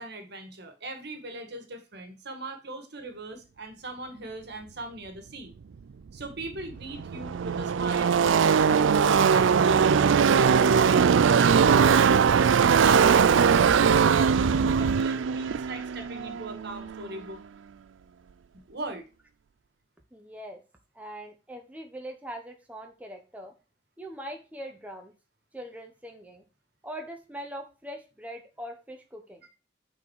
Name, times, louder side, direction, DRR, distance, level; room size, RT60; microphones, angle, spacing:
voice 1, 0.0-5.5 6.1-17.4 18.7-19.1, right 2 dB, 60° right, 6 dB, 1.8 m, -39 dB
Car passing by / Race car auto racing, 6.2-6.3 6.5-17.1, right 6 dB, 80° right, 0.4 m, -21 dB
voice 2, 20.1-20.6 20.9-23.5 24.0-25.1 25.5-26.4 26.8-29.4, equal, 10° right, 3 dB, 1.0 m, -41 dB
8.5 x 4.5 x 4.7 m, 0.32 s
head